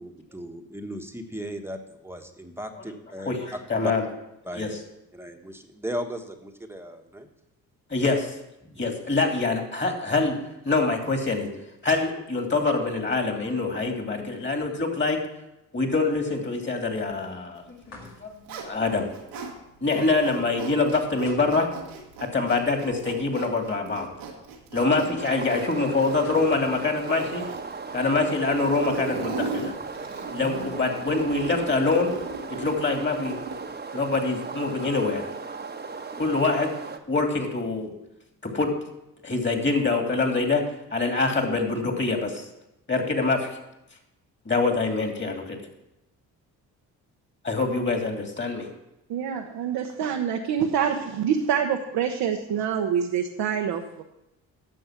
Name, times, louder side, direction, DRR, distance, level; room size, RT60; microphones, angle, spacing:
voice 1, 0.0-3.9 4.4-4.7 5.1-7.3 8.6-8.9, equal, 5° right, 4 dB, 1.3 m, -37 dB
voice 2, 3.3-4.0 4.5-4.8 7.9-8.3 8.8-10.4 10.6-11.5 11.8-15.2 15.7-19.1 19.8-21.7 22.2-24.1 24.7-27.4 27.9-29.7 30.3-32.1 32.5-33.4 33.9-35.3 36.2-36.7 37.1-37.9 38.5-38.7 39.2-40.6 40.9-42.4 42.9-43.5 44.5-45.6 47.4-48.7, left 3 dB, 30° left, 3 dB, 2.6 m, -25 dB
sound 1, 17.8-18.6 21.3-22.3 22.6-22.7 26.2-27.0, left 2 dB, 85° left, 2.3 m, -45 dB
Zipper (clothing), 17.9-19.5 19.9-33.7, right 4 dB, 90° right, 1.5 m, -37 dB
sound 2, 25.2-37.0, right 4 dB, 25° right, 1.1 m, -37 dB
voice 3, 49.1-54.0, right 8 dB, 70° right, 2 dB, 1.0 m, -26 dB
10.0 x 6.9 x 5.9 m, 0.88 s
hypercardioid pair, 55°, 40 cm